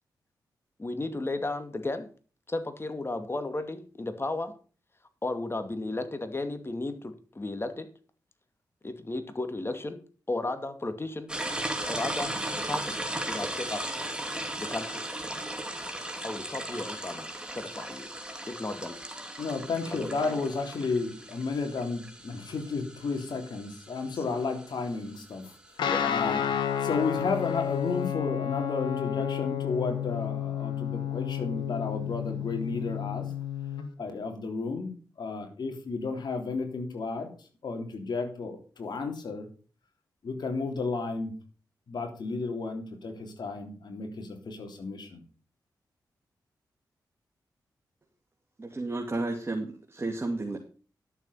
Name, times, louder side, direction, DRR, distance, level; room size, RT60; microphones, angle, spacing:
voice 1, 0.8-2.1 2.5-4.5 5.2-7.9 8.8-10.0 10.3-11.3 11.9-12.3 12.7-13.0 13.3-13.8 14.6-15.0 16.2-18.1 18.5-19.0 20.2-20.4 25.9-26.0, left 2 dB, 30° left, 9 dB, 2.3 m, -34 dB
sound 1, 11.3-25.7, right 1 dB, 10° right, 2.5 m, -37 dB
voice 2, 19.4-25.4 26.0-26.4 26.8-33.3 34.0-37.3 37.6-39.5 40.2-41.3 41.9-45.2, left 4 dB, 65° left, 4 dB, 3.5 m, -32 dB
Guitar, 25.8-33.8, left 9 dB, 90° left, 1.6 m, -31 dB
voice 3, 48.6-50.6, right 2 dB, 30° right, 1 dB, 2.5 m, -32 dB
12.0 x 7.4 x 5.6 m, 0.39 s
cardioid pair, 50°, 8 cm